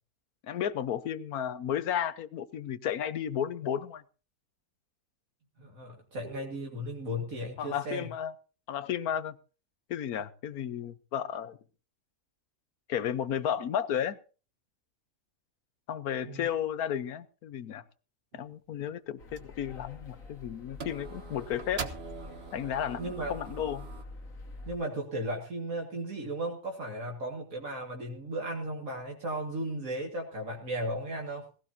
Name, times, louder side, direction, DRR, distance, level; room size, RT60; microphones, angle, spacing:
voice 1, 0.5-4.0 7.6-8.3 8.7-9.3 9.9-11.6 12.9-14.2 15.9-17.8 18.3-21.8 22.5-23.9, left 9 dB, 80° left, 14 dB, 1.4 m, -33 dB
voice 2, 5.6-8.1 16.2-16.5 23.0-23.3 24.7-31.5, right 1 dB, 65° right, 0 dB, 2.5 m, -35 dB
sound 1, 18.3-18.6 19.4-19.5 19.8-20.4 20.8-24.0, right 5 dB, 45° right, 1.3 m, -43 dB
sound 2, 19.2-24.8, left 2 dB, 65° left, 2.0 m, -47 dB
18.0 x 16.5 x 2.8 m, 0.36 s
omnidirectional pair, 1.6 m